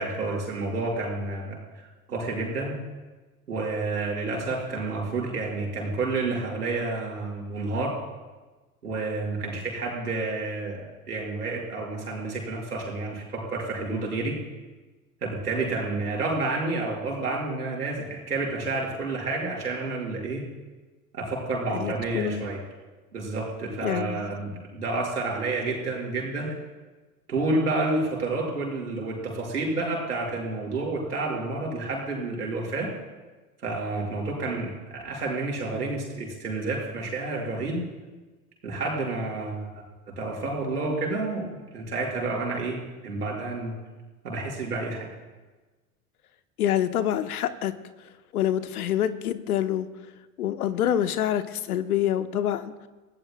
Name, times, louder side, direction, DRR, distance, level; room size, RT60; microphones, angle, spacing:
voice 1, 0.0-2.8 3.5-7.9 8.8-14.4 15.2-20.4 21.1-22.6 23.1-26.5 27.3-32.9 33.6-37.8 38.6-39.7 40.2-43.7 44.2-45.1, right 3 dB, 85° right, -2 dB, 5.2 m, -30 dB
voice 2, 21.7-22.5 23.8-24.2 46.6-47.7 48.3-49.9 50.4-52.7, left 11 dB, 75° left, 11 dB, 1.0 m, -26 dB
27.5 x 17.0 x 2.3 m, 1.2 s
hypercardioid pair, 85°, 45 cm